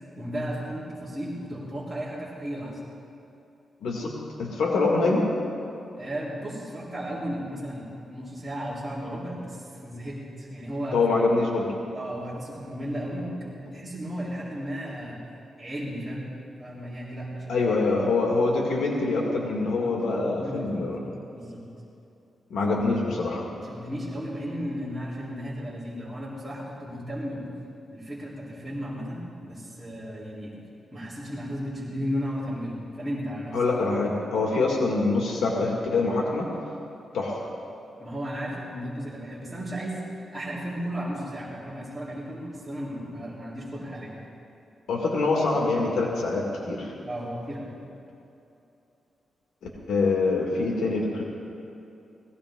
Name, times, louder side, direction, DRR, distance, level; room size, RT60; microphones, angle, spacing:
voice 1, 0.2-2.8 6.0-11.0 11.9-15.2 15.6-16.3 16.6-17.6 19.6-20.9 21.3-21.6 23.5-27.4 27.9-30.5 30.9-33.6 34.0-34.1 38.0-44.2 47.1-47.7, equal, 5° right, -10 dB, 3.8 m, -34 dB
voice 2, 3.8-4.1 4.4-5.3 10.9-11.8 17.5-21.0 22.5-23.4 33.5-36.5 37.1-37.5 44.9-46.9 49.9-51.2, left 3 dB, 90° left, -1 dB, 2.0 m, -25 dB
19.0 x 16.0 x 3.8 m, 2.8 s
wide cardioid pair, 130°, 0 cm